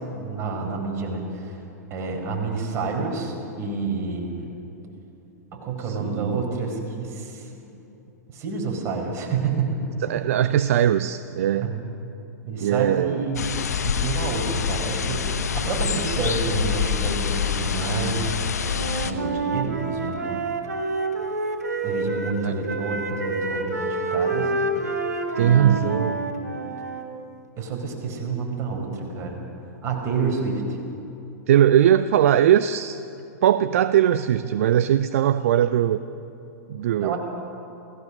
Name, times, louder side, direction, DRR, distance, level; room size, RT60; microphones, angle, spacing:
voice 1, 0.1-1.6 1.9-4.5 5.5-7.5 8.3-10.3 11.6-11.8 12.4-13.5 13.8-18.4 19.0-20.2 21.8-24.5 25.4-26.1 27.6-29.4 29.8-30.8 37.0-37.2, right 4 dB, 30° right, 1 dB, 4.8 m, -29 dB
voice 2, 5.9-6.4 10.0-11.7 12.6-13.3 20.2-20.5 22.4-22.5 25.4-26.2 31.5-33.0 33.4-36.0 36.7-37.1, right 10 dB, 55° right, 13 dB, 0.6 m, -20 dB
sound 1, 13.4-19.1, left 6 dB, 70° left, 1.2 m, -26 dB
Wind instrument woodwind instrument, 18.6-22.4 22.6-27.0, right 3 dB, 75° right, 3.3 m, -28 dB
28.5 x 17.0 x 6.4 m, 3.0 s
figure-of-eight pair, 100°, 9 cm